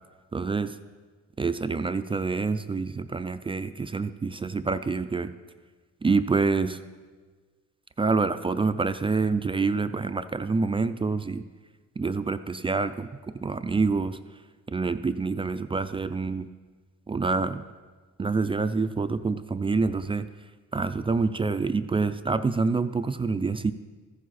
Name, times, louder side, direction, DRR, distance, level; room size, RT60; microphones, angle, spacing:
voice 1, 0.3-0.8 1.4-5.3 6.0-6.8 8.0-11.4 12.0-13.1 13.4-14.2 14.7-16.5 17.1-17.6 18.2-20.3 20.7-23.7, right 4 dB, 20° right, 11 dB, 0.3 m, -26 dB
14.0 x 7.5 x 4.1 m, 1.4 s
cardioid pair, 90°, 30 cm